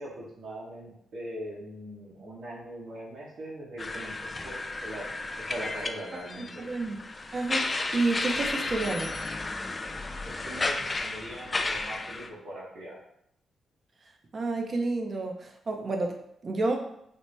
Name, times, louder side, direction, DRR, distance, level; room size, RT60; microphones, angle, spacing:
voice 1, 0.0-5.1 5.4-6.7 10.3-13.0, right 1 dB, 80° right, -5 dB, 1.0 m, -41 dB
sound 1, 3.8-12.3, left 2 dB, 30° left, 0.3 m, -33 dB
voice 2, 6.4-7.0 7.3-9.1 14.3-16.2 16.4-16.8, right 3 dB, 45° right, 3 dB, 0.6 m, -30 dB
4.3 x 2.1 x 3.2 m, 0.74 s
cardioid pair, 75°, 0 cm